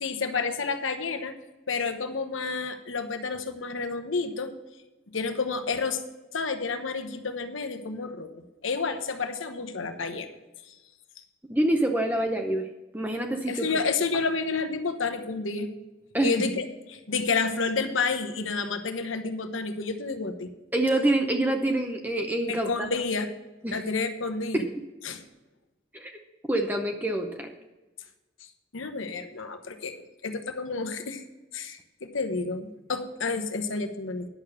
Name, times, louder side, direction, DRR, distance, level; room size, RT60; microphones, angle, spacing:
voice 1, 0.0-1.4 1.7-4.5 5.1-6.0 6.3-8.3 8.6-10.3 10.7-10.8 13.5-15.7 16.2-20.5 22.5-23.3 23.7-24.6 25.0-25.2 28.7-29.9 30.2-31.2 31.5-34.3, left 4 dB, 85° left, 7 dB, 1.1 m, -30 dB
voice 2, 11.5-12.7 12.9-13.7 16.1-16.5 20.7-22.9 23.6-23.8 24.5-24.6 25.9-26.1 26.5-27.5, right 1 dB, 10° right, 3 dB, 0.7 m, -26 dB
10.5 x 6.8 x 6.3 m, 1.1 s
head